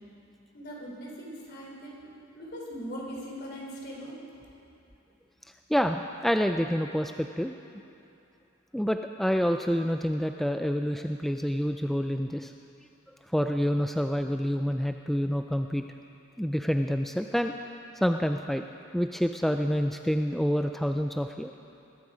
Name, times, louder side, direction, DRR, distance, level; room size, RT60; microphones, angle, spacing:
voice 1, 0.5-4.2, equal, 55° left, -3 dB, 3.8 m, -40 dB
voice 2, 5.7-7.5 8.7-12.5 13.3-15.8 16.4-17.5 18.0-18.6 18.9-21.5, equal, ahead, 5 dB, 0.3 m, -27 dB
21.0 x 12.0 x 5.0 m, 2.8 s
head